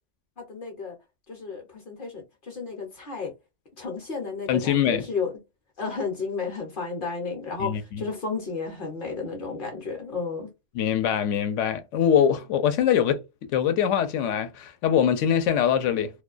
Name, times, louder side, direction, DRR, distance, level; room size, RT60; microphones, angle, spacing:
voice 1, 0.4-1.0 1.3-3.3 3.8-5.3 5.8-10.5, left 4 dB, 50° left, 0.8 m, -32 dB
voice 2, 4.5-5.0 7.6-8.0 10.7-13.2 13.5-16.1, left 9 dB, 80° left, 0.9 m, -23 dB
2.4 x 2.2 x 2.4 m
omnidirectional pair, 1.3 m